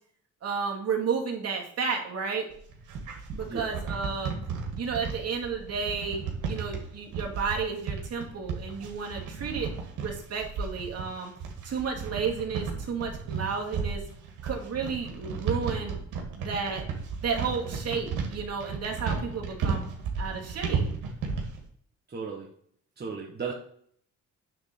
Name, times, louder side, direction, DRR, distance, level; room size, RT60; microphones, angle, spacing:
voice 1, 0.4-2.5 3.3-4.4 4.8-9.7 10.0-11.3 11.6-14.0 14.4-16.0 16.4-16.8 17.2-19.8 20.2-20.9, right 5 dB, 55° right, 0 dB, 2.5 m, -32 dB
sound 1, 2.5-21.6, right 5 dB, 85° right, 2.4 m, -34 dB
voice 2, 22.1-22.5 23.0-23.5, right 5 dB, 35° right, -2 dB, 1.6 m, -35 dB
9.4 x 4.0 x 7.0 m, 0.62 s
cardioid pair, 90°, 30 cm